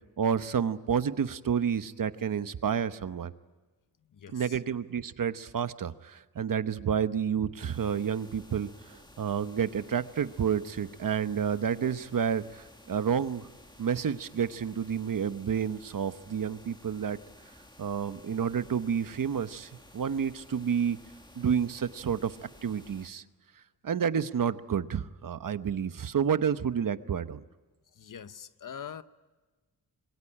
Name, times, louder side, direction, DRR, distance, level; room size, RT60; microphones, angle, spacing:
voice 1, 0.2-3.3 4.3-13.5 13.8-17.2 17.8-21.0 21.4-22.4 22.6-23.2 23.8-27.4, right 7 dB, 65° right, 1.0 m, -30 dB
voice 2, 4.1-4.6 28.0-29.0, left 8 dB, 65° left, 0.9 m, -43 dB
sound 1, 7.6-23.1, left 1 dB, 10° left, 1.8 m, -55 dB
26.5 x 22.0 x 10.0 m
wide cardioid pair, 165°, 35 cm